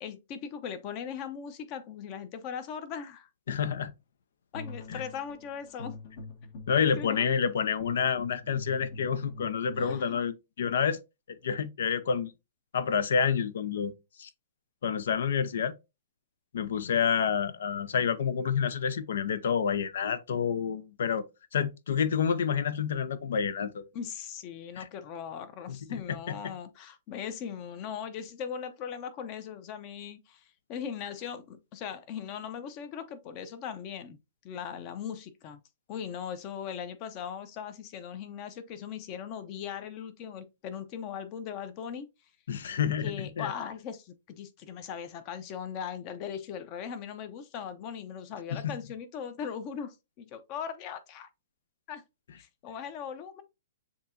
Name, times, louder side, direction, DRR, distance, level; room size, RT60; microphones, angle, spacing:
voice 1, 0.0-3.3 4.5-6.0 7.0-7.3 9.8-10.3 23.9-30.4 30.7-34.2 34.4-35.6 35.9-42.1 43.0-51.3 51.9-52.0 52.4-53.4, left 8 dB, 35° left, 0.7 m, -39 dB
voice 2, 3.5-3.9 4.9-5.0 6.7-11.0 11.4-12.3 12.7-13.9 14.2-14.3 14.8-15.7 16.5-21.2 21.5-23.9 24.8-24.9 25.7-25.8 26.1-26.5 42.5-43.5 48.5-48.8, left 7 dB, 75° left, 0.5 m, -28 dB
sound 1, 4.5-10.0, left 3 dB, 55° left, 1.2 m, -44 dB
7.0 x 2.9 x 2.5 m
hypercardioid pair, 145°, 0 cm